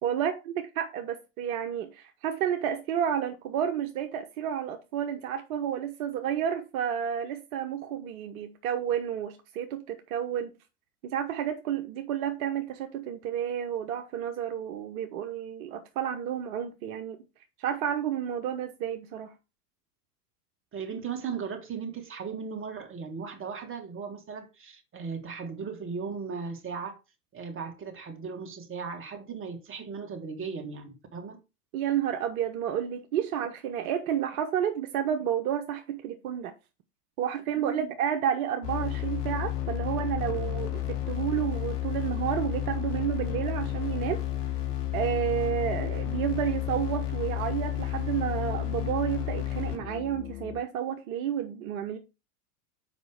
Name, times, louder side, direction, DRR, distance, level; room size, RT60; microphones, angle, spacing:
voice 1, 0.0-10.5 11.0-17.2 17.6-19.3 31.7-36.5 37.2-44.2 44.9-52.0, right 9 dB, 60° right, 1.1 m, -31 dB
voice 2, 20.7-27.0 27.3-31.4 37.5-37.9, right 5 dB, 25° right, 2.3 m, -37 dB
sound 1, 38.6-50.6, left 13 dB, 70° left, 2.3 m, -32 dB
7.3 x 5.3 x 4.9 m
hypercardioid pair, 95°, 48 cm